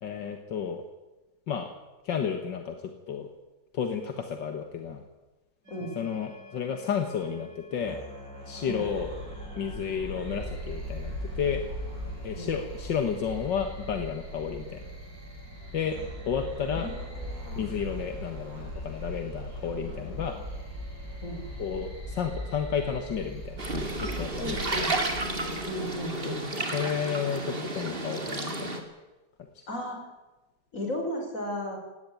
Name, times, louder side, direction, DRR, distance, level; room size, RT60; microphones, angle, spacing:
voice 1, 0.0-0.8 1.5-1.7 2.0-2.7 3.1-3.3 3.7-5.0 6.0-8.0 8.4-9.1 9.6-11.1 11.4-11.6 12.2-14.8 15.7-16.0 16.3-16.9 17.6-20.4 21.6-23.7 24.0-24.6 26.2-26.4 26.7-28.8, left 7 dB, 80° left, 6 dB, 2.2 m, -32 dB
sound 1, 5.6-21.6, left 1 dB, 80° right, 6.5 m, -47 dB
sound 2, 8.8-26.7, equal, 50° right, 8.2 m, -40 dB
voice 2, 16.7-17.7 21.2-21.4 24.4-25.0 25.6-26.5 29.7-30.0 30.7-31.8, equal, 45° left, 2 dB, 5.8 m, -35 dB
sound 3, 23.6-28.8, right 2 dB, 30° right, 2.6 m, -32 dB
18.5 x 17.5 x 9.3 m, 1.1 s
omnidirectional pair, 1.9 m